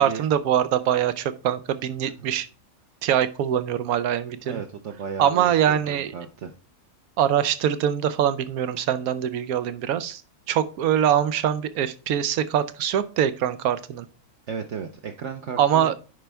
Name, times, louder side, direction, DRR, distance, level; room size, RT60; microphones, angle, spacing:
voice 1, 0.0-2.5 3.0-4.6 5.2-6.1 7.2-10.2 10.5-14.0 15.6-15.9, right 10 dB, 85° right, 13 dB, 1.1 m, -23 dB
voice 2, 4.4-6.5 14.5-16.0, right 6 dB, 60° right, 4 dB, 0.9 m, -35 dB
10.0 x 4.4 x 3.4 m, 0.34 s
omnidirectional pair, 1.5 m